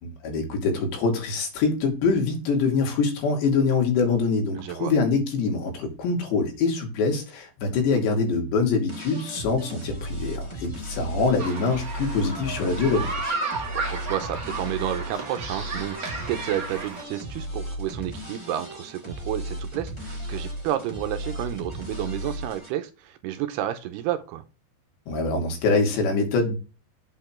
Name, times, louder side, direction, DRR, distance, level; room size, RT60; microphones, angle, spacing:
voice 1, 0.0-13.4 25.1-26.6, left 4 dB, 75° left, 2 dB, 4.7 m, -24 dB
voice 2, 4.6-4.9 13.7-24.4, right 12 dB, 80° right, 9 dB, 2.6 m, -31 dB
sound 1, 8.9-22.7, equal, 10° left, 2.3 m, -36 dB
sound 2, 11.4-17.0, right 3 dB, 45° right, 1.1 m, -33 dB
8.3 x 6.8 x 4.4 m, 0.31 s
omnidirectional pair, 5.1 m